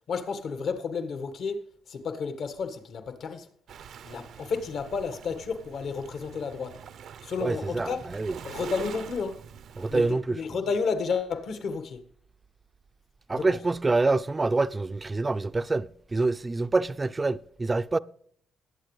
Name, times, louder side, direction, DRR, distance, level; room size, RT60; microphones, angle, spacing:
voice 1, 0.1-3.5 4.0-6.8 7.2-8.0 8.4-9.4 9.9-12.0 13.3-13.6, left 5 dB, 65° left, 1.6 m, -32 dB
Waves surf, 3.7-10.1, right 8 dB, 70° right, 0.7 m, -45 dB
voice 2, 7.4-8.3 9.8-10.3 13.3-18.0, right 3 dB, 25° right, 0.5 m, -26 dB
20.5 x 8.2 x 3.3 m
cardioid pair, 90°, 0 cm